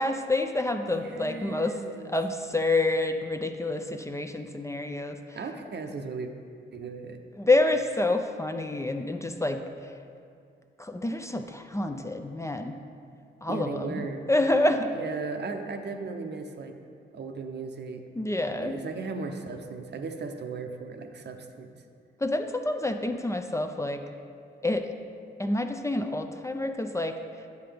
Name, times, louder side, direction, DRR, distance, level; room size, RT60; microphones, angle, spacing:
voice 1, 0.0-1.7 2.0-5.4 7.4-9.6 10.8-12.7 13.4-14.9 18.2-18.8 22.2-24.0 24.6-24.9 25.4-27.2, left 2 dB, 15° left, 6 dB, 0.4 m, -28 dB
voice 2, 0.9-2.1 5.3-6.3 6.7-7.2 13.5-14.2 14.9-16.7 17.1-18.1 18.6-21.8, right 4 dB, 60° right, 5 dB, 0.7 m, -36 dB
9.2 x 6.7 x 3.4 m, 2.3 s
cardioid pair, 75°, 20 cm